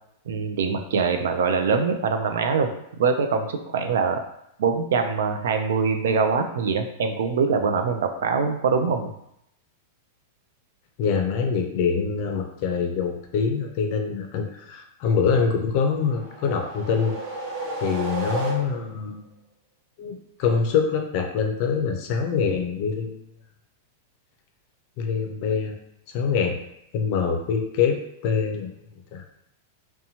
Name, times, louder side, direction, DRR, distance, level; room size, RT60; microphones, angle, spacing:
voice 1, 0.3-2.7 3.0-4.2 4.6-9.1, right 5 dB, 80° right, 6 dB, 0.3 m, -23 dB
voice 2, 11.0-17.1 17.8-19.2 20.0-23.2 25.0-25.8 26.1-26.6 26.9-28.7 29.1-29.2, left 6 dB, 45° left, 4 dB, 0.4 m, -24 dB
sound 1, 16.0-19.1, right 1 dB, 40° right, 0.8 m, -32 dB
2.8 x 2.2 x 2.7 m, 0.78 s
supercardioid pair, 160°, 0 cm